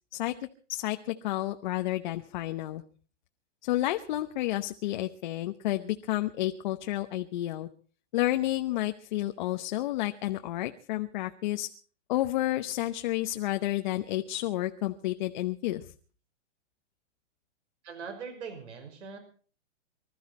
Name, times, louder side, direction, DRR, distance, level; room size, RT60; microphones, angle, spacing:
voice 1, 0.1-2.8 3.6-7.7 8.1-11.7 12.1-15.9, left 15 dB, 40° left, 6 dB, 0.9 m, -31 dB
voice 2, 17.8-19.2, right 5 dB, 75° right, 6 dB, 5.8 m, -41 dB
25.0 x 13.0 x 4.2 m, 0.41 s
hypercardioid pair, 160°, 36 cm